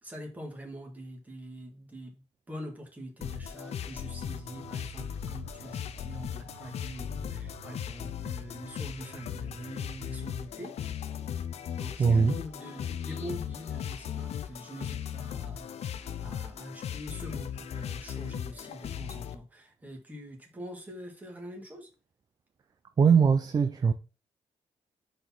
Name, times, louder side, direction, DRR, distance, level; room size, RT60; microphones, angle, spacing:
voice 1, 0.0-10.8 11.8-21.9, equal, 15° right, 2.0 m, -44 dB
sound 1, 3.2-19.3, left 9 dB, 60° left, 0.6 m, -37 dB
sound 2, 4.2-10.5, right 10 dB, 80° right, 1.0 m, -51 dB
voice 2, 12.0-12.4 23.0-23.9, right 6 dB, 35° right, 0.5 m, -21 dB
5.1 x 4.2 x 5.9 m
cardioid pair, 140°, 12 cm